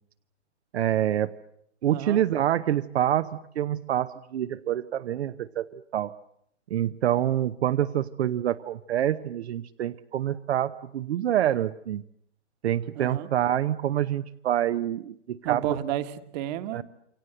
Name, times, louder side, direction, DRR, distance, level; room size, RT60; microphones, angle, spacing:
voice 1, 0.7-1.3 1.8-6.1 6.7-12.0 12.6-15.6 16.7-16.8, right 11 dB, 65° right, 10 dB, 1.0 m, -26 dB
voice 2, 1.9-2.2 12.9-13.3 15.4-16.8, right 11 dB, 35° right, 11 dB, 1.6 m, -31 dB
28.0 x 23.5 x 7.9 m, 0.73 s
hypercardioid pair, 140°, 36 cm